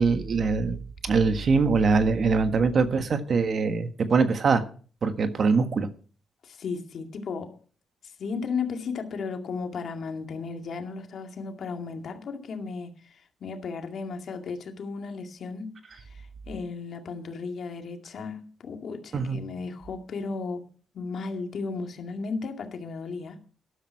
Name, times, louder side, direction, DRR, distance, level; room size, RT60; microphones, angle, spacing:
voice 1, 0.0-4.6 5.0-5.9 19.1-19.4, right 4 dB, 50° right, 1.4 m, -23 dB
voice 2, 6.4-7.6 8.2-20.7 20.9-23.5, left 4 dB, 60° left, 2.2 m, -35 dB
12.5 x 11.5 x 4.7 m
cardioid pair, 100°, 0 cm